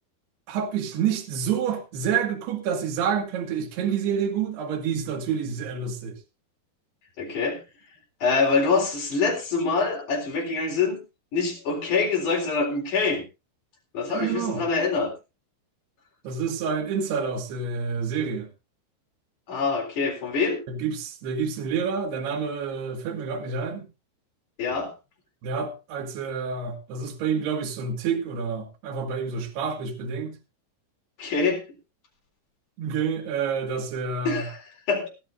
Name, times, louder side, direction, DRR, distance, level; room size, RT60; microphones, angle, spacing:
voice 1, 0.5-6.2 14.1-14.6 16.2-18.5 20.7-23.9 25.4-30.4 32.8-34.5, right 6 dB, 60° right, 3.7 m, -28 dB
voice 2, 7.2-7.6 8.2-11.0 11.3-13.2 13.9-15.1 19.5-20.6 24.6-24.9 31.2-31.6 34.2-34.6 34.9-35.1, left 4 dB, 40° left, 5.0 m, -25 dB
20.0 x 12.0 x 2.6 m
omnidirectional pair, 5.7 m